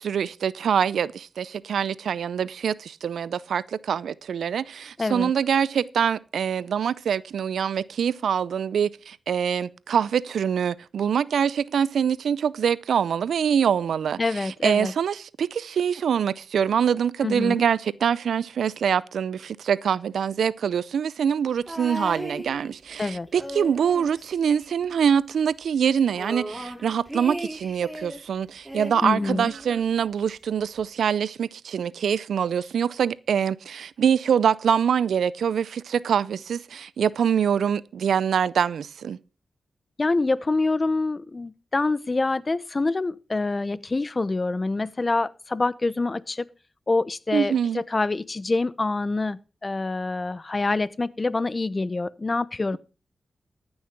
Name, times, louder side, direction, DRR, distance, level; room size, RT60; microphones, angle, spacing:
voice 1, 0.0-39.2 47.3-47.8, right 8 dB, 85° right, 0.4 m, -24 dB
voice 2, 5.0-5.3 14.2-14.9 17.2-17.6 23.0-23.3 29.0-29.5 40.0-46.5 46.9-52.8, left 3 dB, 40° left, 0.8 m, -26 dB
sound 1, 21.7-22.9 23.3-25.2 25.4-25.5 25.8-28.2 28.6-29.9 30.8-30.9, right 1 dB, 10° right, 5.4 m, -36 dB
14.0 x 6.4 x 5.9 m
cardioid pair, 45°, 0 cm